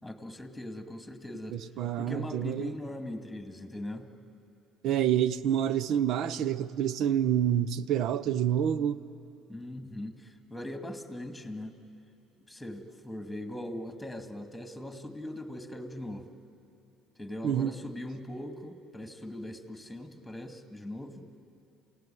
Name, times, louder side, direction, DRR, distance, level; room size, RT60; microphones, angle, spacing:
voice 1, 0.0-1.6 2.0-4.1 9.5-11.7 12.5-16.3 17.2-21.3, left 1 dB, 5° left, 6 dB, 2.3 m, -40 dB
voice 2, 1.5-2.7 4.8-9.0 17.4-17.7, right 10 dB, 65° right, 17 dB, 0.7 m, -28 dB
28.0 x 17.0 x 9.3 m, 2.9 s
supercardioid pair, 90°, 0 cm